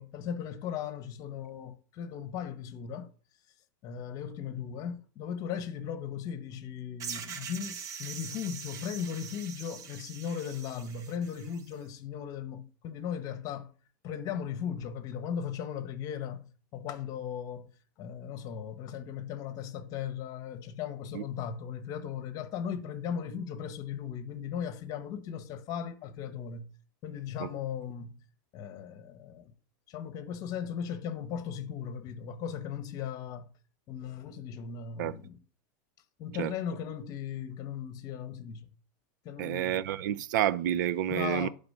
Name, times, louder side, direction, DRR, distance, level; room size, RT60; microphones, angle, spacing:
voice 1, 0.0-3.1 3.8-13.7 14.0-17.7 18.0-26.7 27.0-28.2 28.5-29.5 29.9-33.5 33.9-35.4 36.2-38.7 39.2-39.8 41.1-41.5, left 8 dB, 35° left, 1.3 m, -37 dB
sound 1, 7.0-11.7, right 7 dB, 35° right, 1.0 m, -43 dB
voice 2, 39.4-41.5, right 11 dB, 70° right, 0.5 m, -29 dB
11.0 x 4.1 x 5.6 m
supercardioid pair, 145°, 10 cm